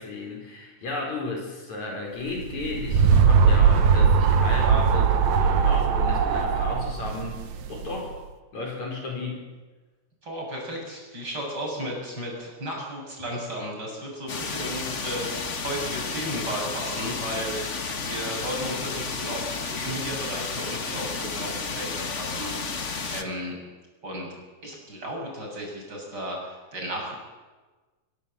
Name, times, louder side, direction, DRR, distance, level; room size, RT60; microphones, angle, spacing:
voice 1, 0.0-7.4 7.7-8.2 8.5-9.5, left 2 dB, 65° left, 0 dB, 6.3 m, -34 dB
sound 1, 2.4-8.0, right 6 dB, 65° right, 2.5 m, -20 dB
voice 2, 10.2-17.8 18.0-22.8 23.1-23.6 24.0-24.3 24.6-27.1, equal, 30° right, -1 dB, 7.6 m, -34 dB
sound 2, 14.3-23.2, left 4 dB, 40° left, 1.0 m, -32 dB
23.0 x 22.5 x 7.9 m, 1.3 s
omnidirectional pair, 3.6 m